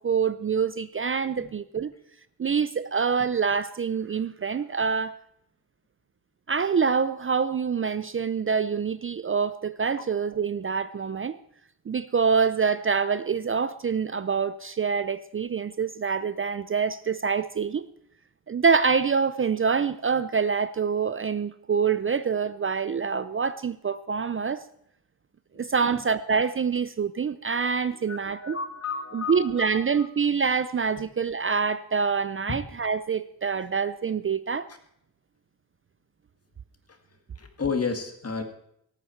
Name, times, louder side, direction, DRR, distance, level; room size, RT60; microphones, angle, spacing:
voice 1, 0.0-1.9 2.4-5.1 6.5-11.4 11.9-17.8 18.5-24.6 25.6-28.6 29.1-34.7, right 6 dB, 35° right, 0.4 m, -26 dB
voice 2, 27.9-30.1 32.5-32.6 37.4-38.4, left 5 dB, 40° left, 2.0 m, -32 dB
17.5 x 13.5 x 4.5 m
wide cardioid pair, 135°, 36 cm